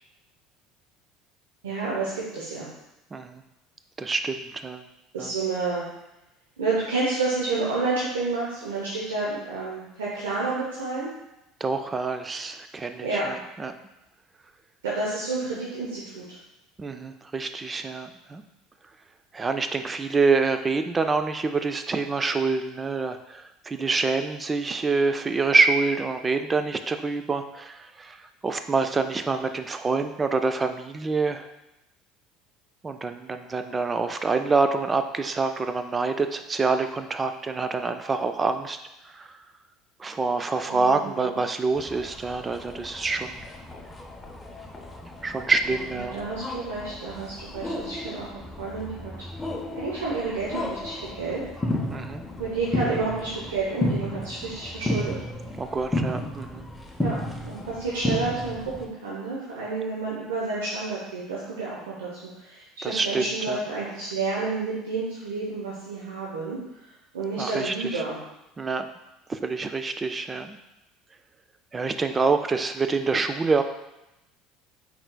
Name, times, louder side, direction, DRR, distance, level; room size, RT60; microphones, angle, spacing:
voice 1, 1.6-2.7 5.1-5.8 6.6-11.1 13.0-13.3 14.8-16.3 40.7-41.4 45.9-48.3 48.6-49.1 49.7-51.4 52.4-55.1 57.0-57.1 57.4-62.1 62.3-66.6 67.1-68.2, right 3 dB, 90° right, -6 dB, 0.7 m, -30 dB
voice 2, 3.1-3.4 4.0-4.8 5.2-5.3 11.6-13.7 16.8-18.4 19.3-28.2 28.4-31.5 32.8-38.8 39.1-39.3 40.0-43.4 45.2-46.2 51.9-52.2 55.6-56.7 62.8-63.6 67.4-68.0 68.6-68.9 69.3-70.6 71.7-73.6, right 4 dB, 25° right, 8 dB, 0.3 m, -26 dB
sound 1, 41.8-58.9, left 1 dB, 15° left, 0.7 m, -33 dB
4.4 x 3.9 x 2.2 m, 0.93 s
hypercardioid pair, 75°, 0 cm